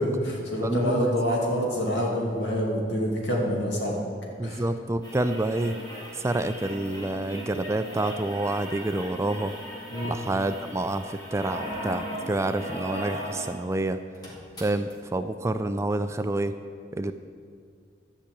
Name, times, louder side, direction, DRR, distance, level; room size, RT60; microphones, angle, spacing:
voice 1, 0.0-4.0 4.4-4.6 9.9-10.1, equal, 75° left, -2 dB, 2.5 m, -26 dB
voice 2, 0.6-1.2 4.4-5.8 6.1-9.5 10.0-14.0 14.6-16.6 16.9-17.1, right 2 dB, 15° right, 10 dB, 0.3 m, -28 dB
sound 1, 5.0-13.6 13.9-14.0 14.1-14.9 15.9-16.0, equal, 20° left, 2.3 m, -38 dB
11.5 x 6.0 x 8.4 m, 2.3 s
head